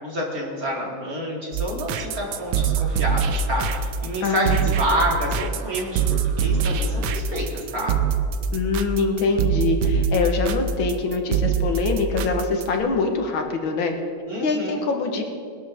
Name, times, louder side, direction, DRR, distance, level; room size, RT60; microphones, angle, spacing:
voice 1, 0.0-8.0 14.2-14.9, equal, 50° right, -2 dB, 3.0 m, -28 dB
sound 1, 1.5-12.8, right 6 dB, 90° right, 1.5 m, -23 dB
voice 2, 4.2-4.9 8.5-13.9 14.4-15.2, left 4 dB, 85° left, 3 dB, 2.2 m, -24 dB
21.0 x 12.5 x 3.6 m, 2.5 s
omnidirectional pair, 2.1 m